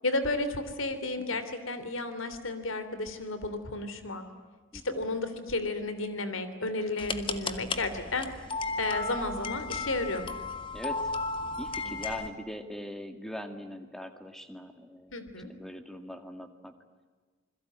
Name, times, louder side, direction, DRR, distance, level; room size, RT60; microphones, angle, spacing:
voice 1, 0.0-4.2 4.8-8.3 8.8-10.2 11.8-11.9 15.1-15.5, left 2 dB, 80° left, 10 dB, 3.2 m, -32 dB
voice 2, 4.7-5.0 10.7-11.1 11.6-16.7, equal, ahead, 7 dB, 2.0 m, -41 dB
sound 1, 7.0-12.3, left 3 dB, 25° left, 1.6 m, -34 dB
28.0 x 22.0 x 9.4 m, 1.5 s
head